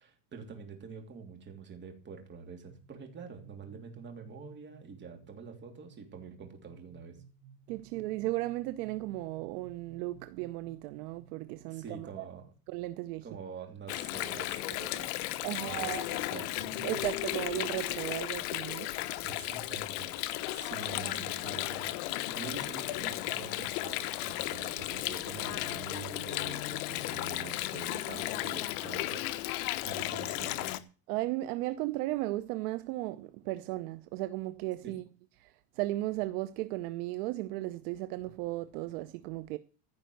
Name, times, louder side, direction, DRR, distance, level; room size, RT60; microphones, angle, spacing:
voice 1, 0.0-7.2 11.7-12.5 13.2-17.0 19.2-20.1 20.5-21.9 22.3-30.7 34.8-35.0, right 5 dB, 20° right, 3.1 m, -46 dB
sound 1, 2.7-12.5, right 7 dB, 85° right, 1.7 m, -57 dB
voice 2, 7.7-12.2 12.7-13.2 15.4-16.1 16.8-18.9 31.1-35.0 35.4-35.5 35.8-39.6, right 17 dB, 60° right, 0.9 m, -35 dB
Water, 13.9-30.8, left 16 dB, 60° left, 1.2 m, -35 dB
15.5 x 5.7 x 7.8 m
cardioid pair, 170°, 50 cm